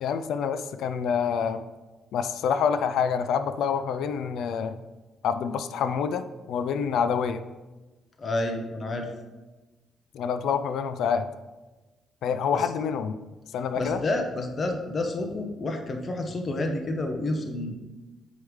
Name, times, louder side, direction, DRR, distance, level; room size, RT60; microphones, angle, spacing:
voice 1, 0.0-1.6 2.1-4.8 5.2-7.4 10.1-11.3 12.2-13.2 13.5-14.0, left 7 dB, 75° left, 11 dB, 0.4 m, -27 dB
voice 2, 8.2-9.1 12.5-12.7 13.8-17.7, left 2 dB, 40° left, 4 dB, 0.9 m, -29 dB
8.0 x 4.8 x 3.1 m, 1.1 s
cardioid pair, 90°, 0 cm